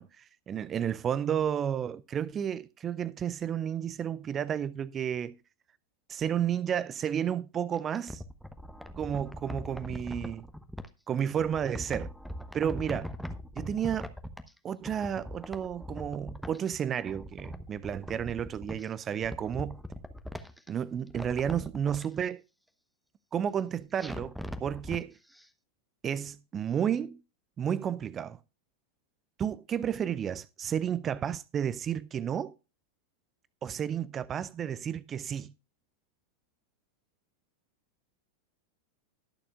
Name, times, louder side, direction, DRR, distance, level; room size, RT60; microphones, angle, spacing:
voice 1, 0.0-5.4 6.1-8.2 9.0-10.4 11.1-12.1 12.5-13.1 13.6-14.1 14.6-19.8 20.7-22.4 23.3-25.2 26.0-27.2 27.6-28.4 29.4-32.5 33.6-35.5, right 9 dB, 25° right, 0.4 m, -32 dB
sound 1, 7.7-10.9 11.4-14.6 14.8-16.7 17.0-18.9 19.2-20.7 21.1-22.1 24.0-25.0 25.4-25.5, equal, ahead, 1.0 m, -41 dB
20.5 x 6.8 x 2.4 m
figure-of-eight pair, 90°, 0 cm